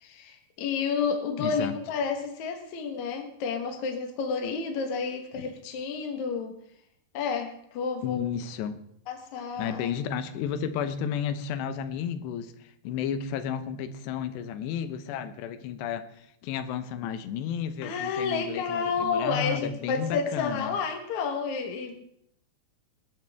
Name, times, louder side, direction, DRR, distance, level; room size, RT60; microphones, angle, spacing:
voice 1, 0.0-6.6 7.1-8.2 9.1-9.9 17.8-22.0, left 5 dB, 60° left, 3 dB, 2.1 m, -30 dB
voice 2, 1.4-1.8 5.4-5.5 8.0-8.8 9.6-20.7, left 8 dB, 85° left, 11 dB, 3.1 m, -32 dB
20.0 x 12.0 x 3.5 m, 0.72 s
omnidirectional pair, 4.8 m